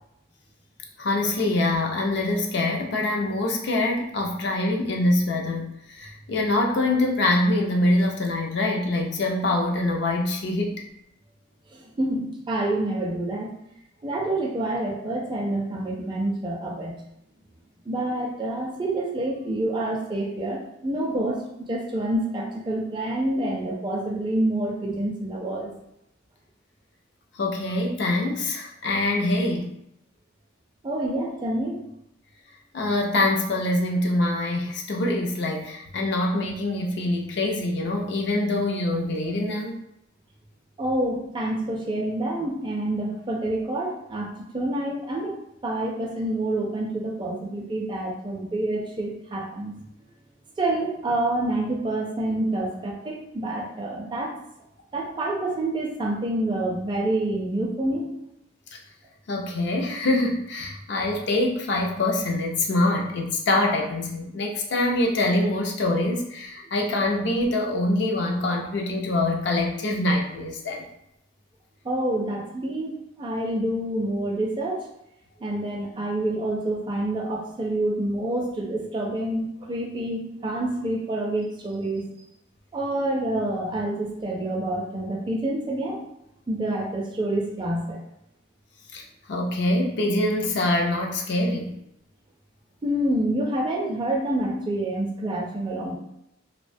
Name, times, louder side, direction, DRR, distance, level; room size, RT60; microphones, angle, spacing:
voice 1, 1.0-10.8 27.4-29.7 32.7-39.8 58.7-58.8 59.3-70.8 88.9-89.0 89.3-91.8, left 2 dB, 60° left, 1 dB, 0.4 m, -24 dB
voice 2, 11.7-13.5 14.0-17.0 17.9-25.7 30.8-31.8 40.8-45.3 45.6-49.7 50.6-54.3 54.9-58.1 71.8-74.8 75.4-82.1 82.7-86.0 86.5-88.0 92.8-95.9, right 1 dB, 25° right, 0 dB, 0.4 m, -27 dB
2.3 x 2.1 x 2.5 m, 0.78 s
head